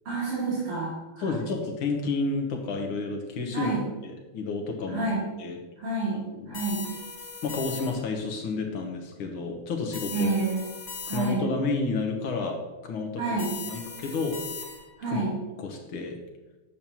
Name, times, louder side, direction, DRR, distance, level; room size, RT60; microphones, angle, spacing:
voice 1, 0.1-1.3 3.5-3.8 4.9-5.3 5.8-6.8 10.1-10.6 11.1-11.4 13.2-13.5 15.0-15.3, right 3 dB, 90° right, -10 dB, 3.5 m, -29 dB
voice 2, 1.2-3.7 4.0-5.1 5.4-5.6 6.3-6.6 7.4-10.3 11.1-12.6 12.8-13.2 13.7-14.4 15.1-15.2 15.6-16.2, left 3 dB, 70° left, 2 dB, 1.9 m, -30 dB
sound 1, 6.5-8.2 9.9-11.6 13.4-15.1, left 4 dB, 55° left, 2.3 m, -39 dB
8.5 x 7.0 x 3.0 m, 1.1 s
omnidirectional pair, 2.4 m